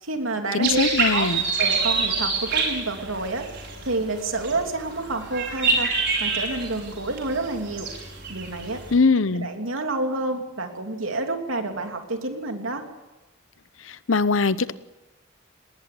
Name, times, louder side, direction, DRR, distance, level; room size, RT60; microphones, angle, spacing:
voice 1, 0.0-1.3 1.6-3.5 3.8-5.9 6.2-7.9 8.3-8.8 9.3-12.8, right 2 dB, 90° right, 4 dB, 3.0 m, -29 dB
voice 2, 0.5-1.4 8.9-9.5 13.8-14.7, left 4 dB, 75° left, 15 dB, 0.9 m, -21 dB
sound 1, 0.6-8.9, right 4 dB, 60° right, 5.7 m, -27 dB
19.5 x 19.0 x 8.7 m, 1.1 s
head